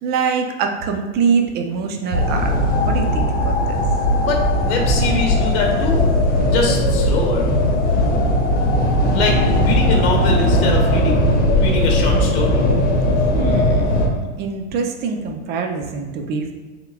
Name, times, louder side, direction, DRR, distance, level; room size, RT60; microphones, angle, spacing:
voice 1, 0.0-2.6 2.9-3.8 13.3-16.5, right 5 dB, 30° right, 4 dB, 0.6 m, -24 dB
sound 1, 2.1-14.1, left 1 dB, 25° left, 0.9 m, -18 dB
voice 2, 4.2-6.2 6.5-7.5 9.1-11.1 11.5-12.7, left 3 dB, 55° left, 1 dB, 1.0 m, -23 dB
5.4 x 3.7 x 2.3 m, 1.4 s
figure-of-eight pair, 90°, 36 cm